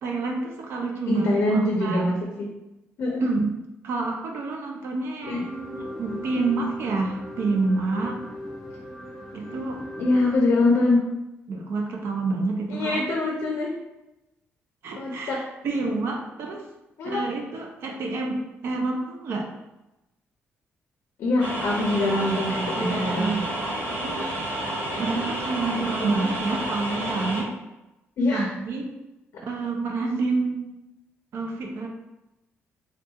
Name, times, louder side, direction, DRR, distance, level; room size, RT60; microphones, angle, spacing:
voice 1, 0.0-2.0 3.2-3.5 3.8-8.2 9.3-9.8 11.5-13.0 14.8-16.7 17.0-19.5 22.7-23.4 23.9-24.5 25.0-27.5 28.3-28.9 29.4-30.7 31.3-31.9, right 3 dB, 60° right, 1 dB, 0.4 m, -28 dB
voice 2, 1.1-2.5 3.0-3.2 5.2-5.4 10.0-11.0 12.7-13.7 15.0-15.4 17.0-17.2 21.2-23.5 28.2-28.5, left 2 dB, 60° left, -1 dB, 0.5 m, -23 dB
sound 1, 5.2-10.4, left 1 dB, ahead, 0.6 m, -39 dB
sound 2, 21.4-27.4, right 1 dB, 80° right, 1.5 m, -30 dB
3.4 x 2.3 x 2.7 m, 0.96 s
cardioid pair, 175°, 5 cm